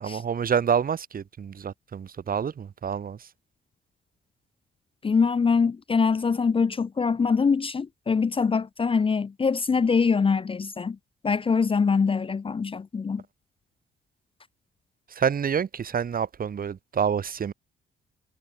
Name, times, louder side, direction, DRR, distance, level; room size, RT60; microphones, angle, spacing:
voice 1, 0.0-3.2 15.2-17.5, right 7 dB, 45° right, 2.0 m, -27 dB
voice 2, 5.0-11.0 11.2-13.2, left 5 dB, 25° left, 0.7 m, -23 dB
cardioid pair, 90°, 20 cm